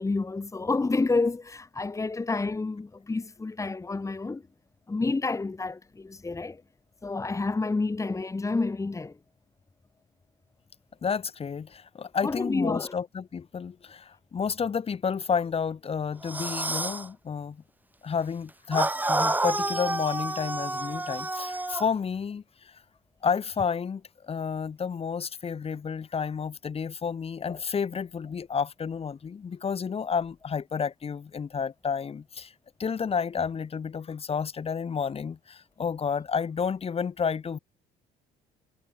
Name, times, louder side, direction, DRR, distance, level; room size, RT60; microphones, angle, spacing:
voice 1, 0.0-4.5 4.9-6.6 7.0-9.2 12.2-12.9, left 3 dB, 20° left, 4.2 m, -29 dB
voice 2, 11.0-17.6 18.0-22.8 23.2-32.5 32.8-37.6, left 6 dB, 35° left, 4.7 m, -31 dB
sound 1, 16.2-17.1 18.7-21.9, right 2 dB, 10° right, 2.2 m, -29 dB
cardioid pair, 110°, 17 cm